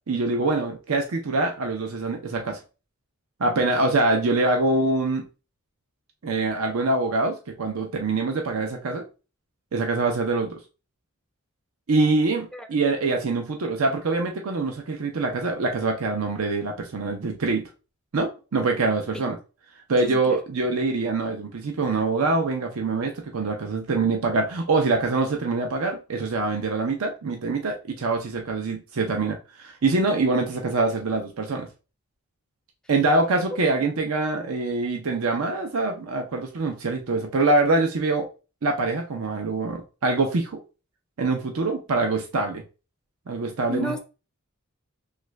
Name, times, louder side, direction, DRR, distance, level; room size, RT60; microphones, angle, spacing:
voice 1, 0.1-2.6 3.4-5.3 6.2-9.1 9.7-10.5 11.9-17.7 18.1-19.4 19.9-31.7 32.9-38.3 38.6-40.6 41.2-42.6 43.3-44.0, right 3 dB, 90° right, 0.6 m, -24 dB
voice 2, 20.0-20.4 43.7-44.0, left 1 dB, 5° left, 0.3 m, -32 dB
3.2 x 2.4 x 3.1 m
head